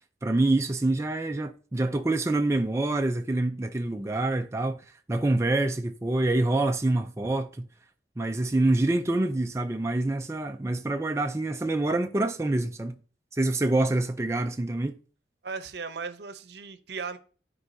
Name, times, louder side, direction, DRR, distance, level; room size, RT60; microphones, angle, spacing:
voice 1, 0.2-7.7 8.2-12.9 13.3-15.0, right 2 dB, 15° right, 0.4 m, -26 dB
voice 2, 15.4-17.2, right 5 dB, 65° right, 0.7 m, -36 dB
13.0 x 4.6 x 2.7 m
head